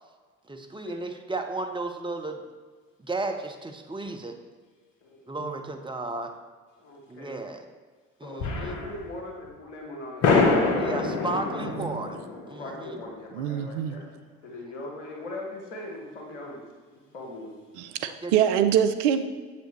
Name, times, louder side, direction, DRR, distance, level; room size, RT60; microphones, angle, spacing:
voice 1, 0.5-2.4 3.0-4.4 5.3-6.3 7.1-7.6 8.2-8.8 10.7-12.2 12.5-13.0 18.2-18.3, right 2 dB, 15° right, 5 dB, 0.8 m, -34 dB
voice 2, 6.8-7.4 8.2-10.8 12.6-16.6 16.9-17.5, left 2 dB, 80° left, 0 dB, 1.4 m, -40 dB
sound 1, 8.4-9.1 9.5-9.6 10.2-13.3, left 3 dB, 65° left, 1.2 m, -26 dB
voice 3, 11.6-12.0 13.3-14.0 17.7-19.3, right 9 dB, 75° right, 10 dB, 0.6 m, -25 dB
7.8 x 6.9 x 3.2 m, 1.5 s
hypercardioid pair, 50°, 36 cm